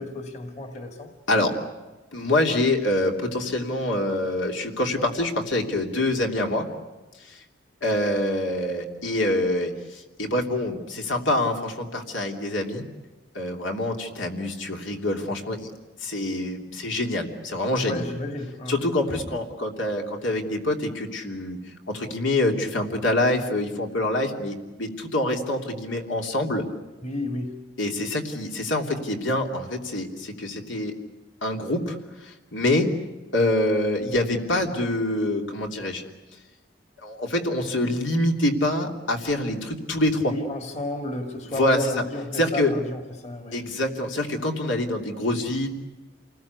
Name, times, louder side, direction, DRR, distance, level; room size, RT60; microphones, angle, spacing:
voice 1, 0.0-1.1 17.8-19.3 27.0-27.7 40.2-43.7, left 2 dB, 35° left, 2.2 m, -32 dB
voice 2, 2.1-6.7 7.3-7.4 7.8-12.8 13.3-15.7 16.0-18.0 18.7-21.6 21.9-26.6 27.8-30.9 31.4-32.0 32.2-32.9 33.3-36.0 37.0-40.3 41.6-42.0 42.3-42.7 43.5-45.7, left 1 dB, 75° left, 3.1 m, -25 dB
28.5 x 20.0 x 8.3 m
head